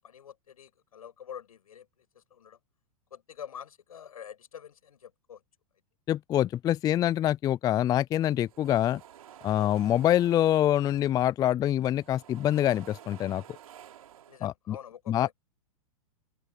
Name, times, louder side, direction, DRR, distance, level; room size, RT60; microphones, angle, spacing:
voice 1, 0.0-2.6 3.1-5.4 9.6-9.8 14.3-15.3, left 8 dB, 85° left, 7.9 m, -46 dB
voice 2, 6.1-9.0 9.4-13.4 14.4-14.8 15.1-15.3, left 12 dB, 20° left, 0.3 m, -25 dB
sound 1, 8.2-11.4 11.7-14.4, right 10 dB, 80° right, 3.6 m, -51 dB
open air
hypercardioid pair, 110°, 18 cm